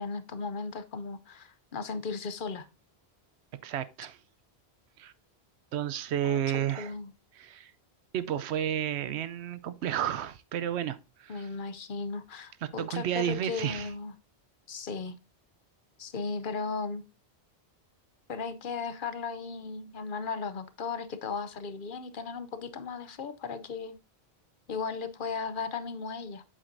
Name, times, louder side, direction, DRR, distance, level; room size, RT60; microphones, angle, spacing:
voice 1, 0.0-2.7 6.2-7.1 11.3-14.1 14.7-15.1 16.0-17.0 18.3-24.0 24.7-26.4, left 5 dB, 55° left, 0.8 m, -36 dB
voice 2, 3.6-4.2 5.0-5.1 5.7-6.9 7.3-7.7 8.1-11.5 12.6-13.9, right 10 dB, 85° right, 0.9 m, -32 dB
7.8 x 7.6 x 2.6 m
omnidirectional pair, 1.1 m